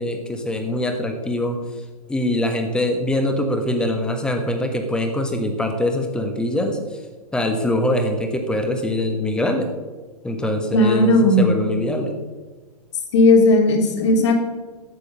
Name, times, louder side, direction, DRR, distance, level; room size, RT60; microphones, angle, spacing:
voice 1, 0.0-1.6 2.1-6.8 7.3-9.7 10.2-12.2, left 1 dB, 5° left, 5 dB, 1.3 m, -23 dB
voice 2, 10.7-11.5 13.1-14.3, left 2 dB, 45° left, 3 dB, 2.7 m, -15 dB
13.0 x 8.5 x 6.2 m, 1.3 s
figure-of-eight pair, 120°, 20 cm